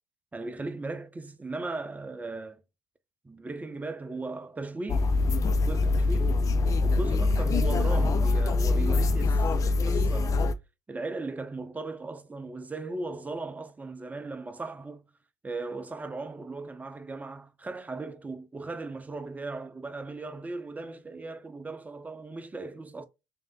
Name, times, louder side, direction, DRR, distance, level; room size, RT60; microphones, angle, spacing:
voice 1, 0.3-2.6 3.2-5.1 5.6-6.4 6.8-10.5 10.9-15.0 15.4-23.0, right 3 dB, 15° right, 0.6 m, -37 dB
sound 1, 4.9-10.5, left 3 dB, 35° left, 0.4 m, -24 dB
3.2 x 2.7 x 3.6 m
hypercardioid pair, 60°, 9 cm